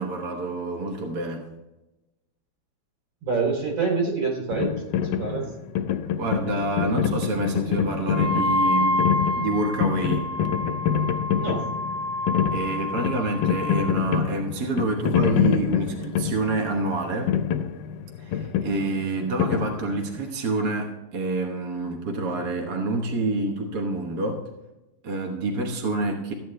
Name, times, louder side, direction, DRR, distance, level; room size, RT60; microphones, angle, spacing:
voice 1, 0.0-1.4 6.2-10.3 12.5-17.3 18.2-24.4 25.0-26.3, right 2 dB, 55° right, 1 dB, 1.7 m, -27 dB
voice 2, 3.2-5.5 11.4-11.6, right 4 dB, 85° right, -1 dB, 3.6 m, -26 dB
sound 1, 4.5-20.3, left 8 dB, 75° left, 1.2 m, -26 dB
Wind instrument woodwind instrument, 8.1-13.9, left 2 dB, 40° left, 1.1 m, -28 dB
14.0 x 9.2 x 3.2 m, 1.0 s
omnidirectional pair, 2.1 m